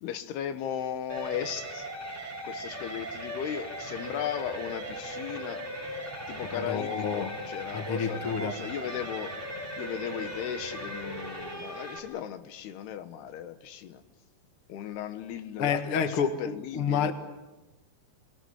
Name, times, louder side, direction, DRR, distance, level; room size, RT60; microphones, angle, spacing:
voice 1, 0.0-1.9 2.4-5.6 6.3-9.3 9.8-14.0 14.7-17.1, left 10 dB, 90° left, 10 dB, 3.3 m, -36 dB
sound 1, 1.1-12.0, right 1 dB, 5° left, 5.0 m, -38 dB
voice 2, 6.5-7.3 7.7-8.6 15.6-17.1, left 6 dB, 50° left, 8 dB, 1.7 m, -29 dB
28.5 x 21.5 x 8.1 m, 1.1 s
omnidirectional pair, 4.5 m